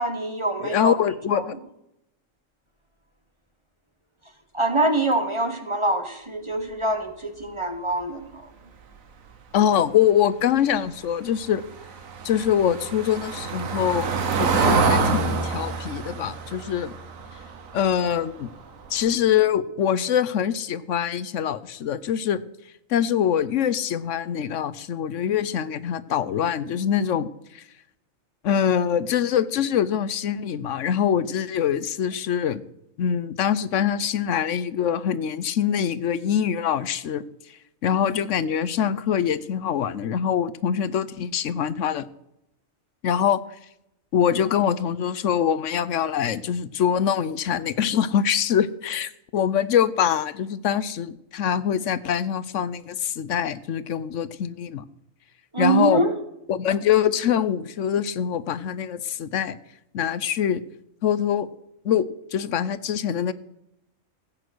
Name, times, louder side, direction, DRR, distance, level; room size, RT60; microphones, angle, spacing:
voice 1, 0.0-1.0 1.3-1.5 4.5-8.4 55.5-56.1, right 2 dB, 25° right, 7 dB, 1.2 m, -24 dB
voice 2, 0.6-1.5 9.5-11.6 12.2-16.9 17.7-18.5 18.9-22.4 22.9-27.3 27.5-27.6 28.4-32.6 33.0-37.2 37.8-42.1 43.0-43.4 44.1-54.8 55.6-56.1 56.5-59.6 59.9-60.6 61.0-61.5 61.8-63.3, left 9 dB, 70° left, 17 dB, 1.0 m, -24 dB
Car passing by / Engine, 11.3-18.3 18.6-18.9 19.1-19.2, right 4 dB, 80° right, 1.6 m, -26 dB
16.0 x 8.9 x 6.2 m, 0.82 s
omnidirectional pair, 1.4 m